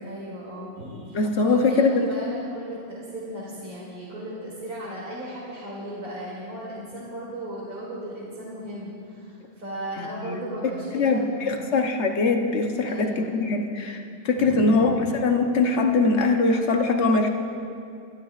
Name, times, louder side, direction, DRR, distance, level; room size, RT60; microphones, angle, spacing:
voice 1, 0.0-11.8 12.8-13.3 14.4-14.9, equal, 45° right, -8 dB, 3.0 m, -36 dB
voice 2, 1.1-2.1 10.0-10.4 10.9-14.9 15.2-17.3, left 3 dB, 50° left, 3 dB, 0.9 m, -22 dB
28.0 x 12.5 x 2.4 m, 2.5 s
omnidirectional pair, 2.1 m